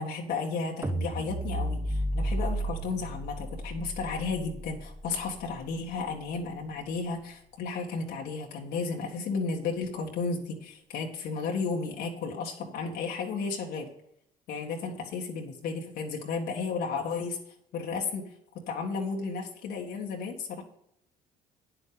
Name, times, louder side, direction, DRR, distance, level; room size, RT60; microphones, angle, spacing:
voice 1, 0.0-13.9 14.5-17.4 17.7-18.2 18.7-20.6, left 4 dB, 75° left, 0 dB, 1.9 m, -33 dB
sound 1, 0.8-7.1, right 1 dB, 15° right, 1.3 m, -34 dB
9.4 x 7.8 x 5.1 m, 0.73 s
cardioid pair, 110°, 17 cm